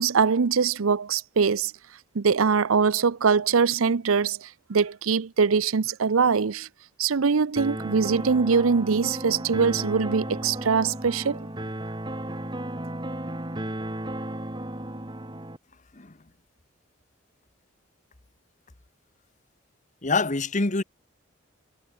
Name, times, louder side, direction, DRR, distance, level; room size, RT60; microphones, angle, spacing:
voice 1, 0.0-1.7 2.1-6.7 7.0-11.4, right 5 dB, 85° right, 0.6 m, -23 dB
sound 1, 7.6-15.6, right 1 dB, 20° right, 2.6 m, -34 dB
voice 2, 20.0-20.8, left 3 dB, 35° left, 1.3 m, -25 dB
head